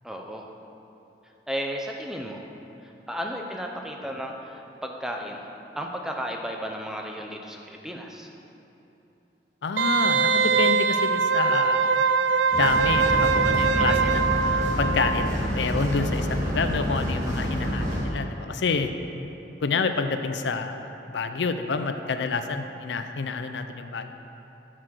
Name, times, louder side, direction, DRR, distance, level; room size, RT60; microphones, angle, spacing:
voice 1, 0.0-0.5 1.5-2.4 2.8-5.5 5.8-8.3 13.7-14.1, equal, 5° right, 1 dB, 0.7 m, -34 dB
voice 2, 9.6-11.8 12.5-18.9 19.6-24.1, left 4 dB, 85° left, 8 dB, 0.6 m, -28 dB
Wind instrument woodwind instrument, 9.8-15.3 15.6-15.7, right 5 dB, 80° right, 0.4 m, -22 dB
sound 1, 12.5-18.0, equal, 45° right, 1.9 m, -28 dB
11.0 x 6.0 x 6.4 m, 3.0 s
head